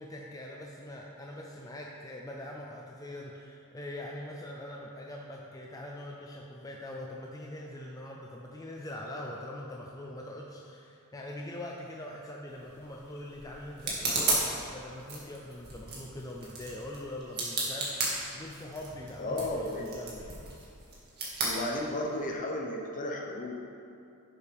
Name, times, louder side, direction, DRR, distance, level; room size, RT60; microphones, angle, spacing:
voice 1, 0.0-18.0 18.3-20.3, left 1 dB, 15° left, -2 dB, 0.5 m, -43 dB
sound 1, 12.5-22.3, right 2 dB, 45° right, 2.0 m, -35 dB
voice 2, 19.2-20.1 21.4-23.5, left 1 dB, 35° left, 1 dB, 1.0 m, -34 dB
11.0 x 7.2 x 3.5 m, 2.6 s
head